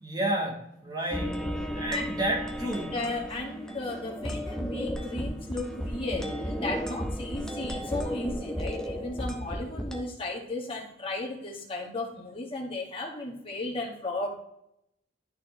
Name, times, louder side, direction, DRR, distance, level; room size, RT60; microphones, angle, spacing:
voice 1, 0.0-1.5 1.7-3.0, right 1 dB, 20° right, -1 dB, 1.2 m, -31 dB
sound 1, 1.1-10.0, equal, 5° left, 0.8 m, -34 dB
voice 2, 2.9-14.3, left 2 dB, 30° left, -2 dB, 1.9 m, -35 dB
12.5 x 4.3 x 3.2 m, 0.78 s
head